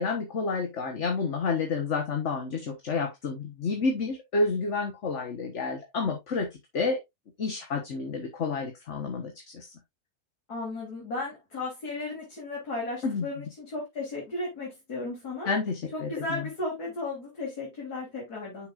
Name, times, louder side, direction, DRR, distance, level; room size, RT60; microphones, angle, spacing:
voice 1, 0.0-6.5 6.7-7.0 7.4-9.7 13.0-13.2 15.5-16.4, left 4 dB, 50° left, 1.5 m, -29 dB
voice 2, 10.5-15.5 15.9-18.7, left 2 dB, 85° left, 4.0 m, -35 dB
8.3 x 6.7 x 2.5 m
omnidirectional pair, 1.6 m